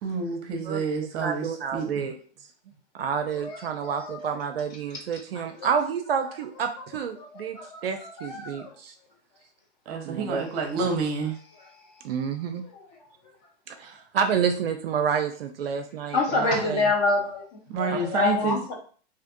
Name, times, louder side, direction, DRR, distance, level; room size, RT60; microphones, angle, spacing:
voice 1, 0.0-2.1 9.9-11.3 17.7-18.6, right 4 dB, 35° right, 2 dB, 0.8 m, -29 dB
voice 2, 0.7-2.2 2.9-7.6 7.8-8.9 10.0-10.4 10.8-10.9 12.0-12.6 13.7-16.9 18.4-18.5, right 7 dB, 55° right, 6 dB, 0.5 m, -29 dB
voice 3, 3.4-4.3 5.1-5.2 5.6-5.7 7.2-8.7 12.5-12.6 16.1-17.4 17.8-18.7, left 3 dB, 35° left, 1 dB, 0.9 m, -27 dB
3.4 x 2.8 x 2.5 m, 0.43 s
figure-of-eight pair, 115°, 36 cm